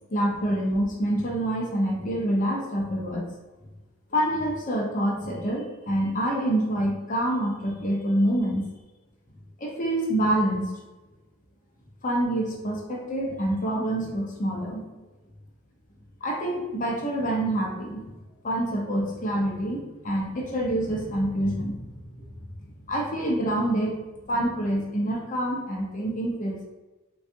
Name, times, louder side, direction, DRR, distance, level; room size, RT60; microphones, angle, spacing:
voice 1, 0.1-3.2 4.1-8.7 9.6-10.7 12.0-14.8 16.2-18.1 18.4-22.0 22.9-24.0 24.2-26.7, right 1 dB, 40° left, -1 dB, 0.6 m, -26 dB
3.5 x 2.3 x 2.7 m, 1.1 s
head